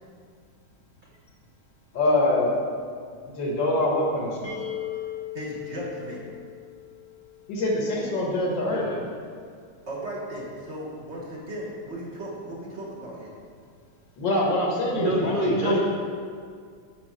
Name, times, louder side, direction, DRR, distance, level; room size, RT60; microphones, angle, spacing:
voice 1, 1.9-2.6 3.4-4.5 7.5-8.9 14.2-15.8, left 1 dB, 75° left, -2 dB, 2.1 m, -24 dB
sound 1, 4.4-8.2, left 11 dB, 60° left, 2.1 m, -38 dB
voice 2, 5.3-6.2 9.9-13.3, right 1 dB, 40° right, -4 dB, 1.4 m, -36 dB
voice 3, 8.7-9.0 14.9-15.8, right 2 dB, 65° right, -3 dB, 0.5 m, -28 dB
7.3 x 5.1 x 6.2 m, 2.1 s
omnidirectional pair, 2.1 m